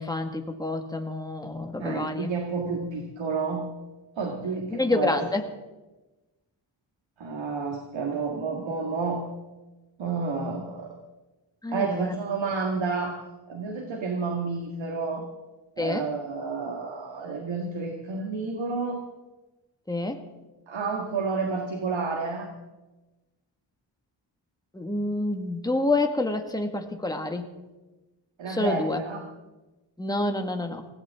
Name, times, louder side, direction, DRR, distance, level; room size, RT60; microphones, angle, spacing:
voice 1, 0.0-2.3 4.7-5.4 11.6-12.1 15.8-16.1 19.9-20.2 24.7-27.5 28.5-29.0 30.0-30.9, left 2 dB, 10° left, 4 dB, 1.8 m, -28 dB
voice 2, 1.8-3.7 4.2-5.2 7.2-9.2 10.0-10.9 11.7-13.2 13.5-15.3 15.8-19.0 20.7-22.5 28.4-29.2, right 4 dB, 80° right, 2 dB, 1.9 m, -30 dB
19.5 x 17.0 x 3.7 m, 1.1 s
cardioid pair, 65°, 45 cm